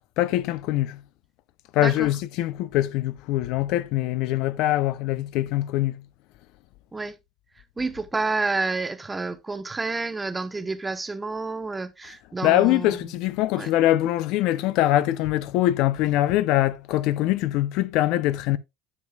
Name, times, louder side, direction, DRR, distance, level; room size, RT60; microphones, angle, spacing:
voice 1, 0.2-1.0 1.7-6.0 12.4-18.6, left 14 dB, 65° left, 0.5 m, -23 dB
voice 2, 1.8-2.1 6.9-7.2 7.8-13.0 13.5-13.7, right 3 dB, 10° right, 0.7 m, -29 dB
9.7 x 7.3 x 2.3 m
cardioid pair, 155°, 0 cm